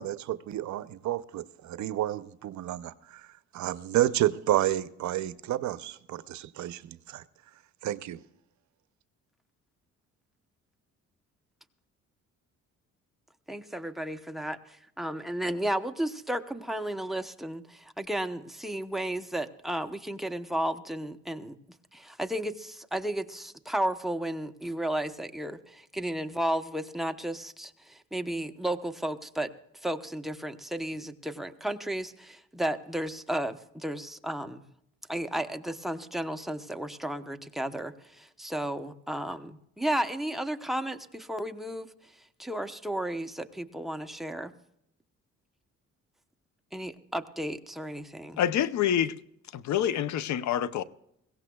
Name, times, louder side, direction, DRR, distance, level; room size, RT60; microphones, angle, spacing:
voice 1, 0.0-7.2 7.8-8.2, right 13 dB, 70° right, 0.6 m, -30 dB
voice 2, 13.5-21.6 21.9-29.5 29.8-34.6 35.1-41.9 42.4-44.5 46.7-48.4, right 1 dB, ahead, 0.8 m, -33 dB
voice 3, 48.4-49.1 49.5-50.8, left 10 dB, 65° left, 0.6 m, -27 dB
21.5 x 16.5 x 2.3 m
cardioid pair, 90°, 30 cm